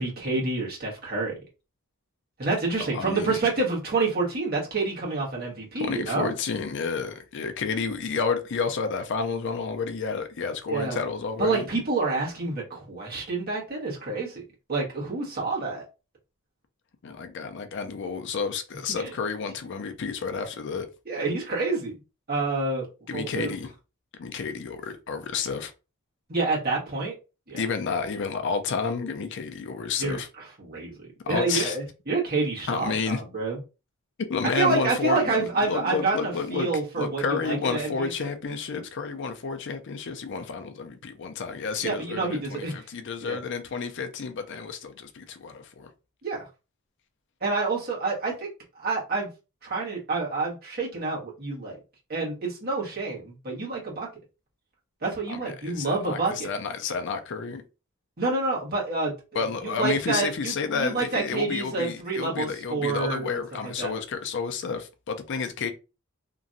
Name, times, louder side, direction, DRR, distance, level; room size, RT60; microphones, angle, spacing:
voice 1, 0.0-1.3 2.4-6.3 10.7-11.0 11.4-14.4 14.7-15.8 19.0-19.1 21.0-21.9 22.3-22.9 23.1-23.5 26.3-27.1 27.5-27.6 30.0-33.6 34.4-38.1 41.8-42.8 43.2-43.4 46.2-46.5 47.4-49.3 49.6-51.8 52.1-54.1 55.0-56.5 58.2-63.9, right 3 dB, 45° right, 1.4 m, -28 dB
voice 2, 2.9-3.4 5.8-11.7 17.0-20.9 23.1-23.7 24.2-25.7 27.5-30.3 31.2-31.8 32.7-33.2 34.2-36.7 37.0-45.9 55.3-57.6 59.3-65.7, left 5 dB, 55° left, 0.5 m, -30 dB
2.9 x 2.6 x 2.6 m
head